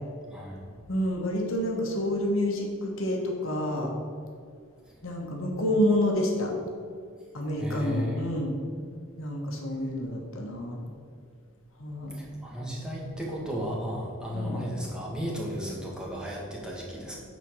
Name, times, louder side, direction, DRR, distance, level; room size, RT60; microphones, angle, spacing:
voice 1, 0.3-0.7 4.9-5.0 7.6-8.2 12.1-17.2, equal, 5° right, -4 dB, 1.7 m, -34 dB
voice 2, 0.9-3.9 5.0-6.5 7.3-8.5 9.2-10.8 11.8-12.2 14.3-14.6, left 1 dB, 65° left, 0 dB, 1.5 m, -28 dB
9.2 x 4.5 x 6.4 m, 2.2 s
head